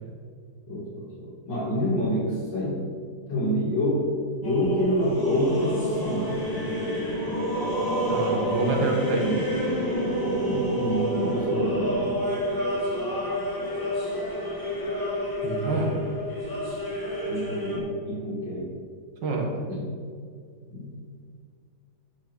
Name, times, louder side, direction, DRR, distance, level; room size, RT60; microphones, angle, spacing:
voice 1, 0.7-2.8 3.3-4.1 4.3-6.5 8.7-8.9 9.2-9.5 10.4-12.2 17.2-18.7 19.7-19.9 20.7-20.9, equal, 85° left, -5 dB, 3.3 m, -27 dB
sound 1, 4.4-17.8, equal, 10° left, 1.6 m, -28 dB
voice 2, 8.1-9.3 15.4-15.9 19.2-19.7, right 3 dB, 85° right, 1 dB, 2.2 m, -27 dB
11.5 x 6.1 x 4.6 m, 2.1 s
omnidirectional pair, 1.9 m